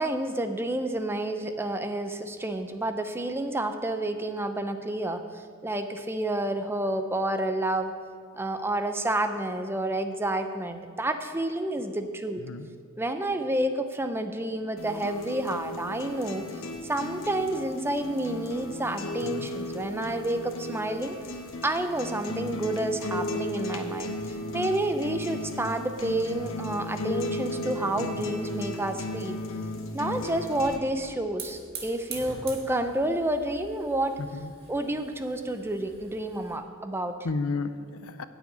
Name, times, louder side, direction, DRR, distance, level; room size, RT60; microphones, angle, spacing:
voice 1, 0.0-7.9 8.3-12.4 13.0-16.4 16.8-21.1 21.6-29.4 29.9-34.2 34.7-37.2, right 1 dB, 10° right, 8 dB, 0.6 m, -29 dB
sound 1, 14.8-30.8, left 1 dB, 65° left, 1.1 m, -35 dB
voice 2, 28.0-28.3 34.2-34.5 37.2-38.2, left 3 dB, 90° left, 11 dB, 0.6 m, -33 dB
Hiss / Fire, 29.7-36.6, right 4 dB, 50° right, 1.7 m, -45 dB
9.5 x 7.1 x 8.6 m, 2.1 s
head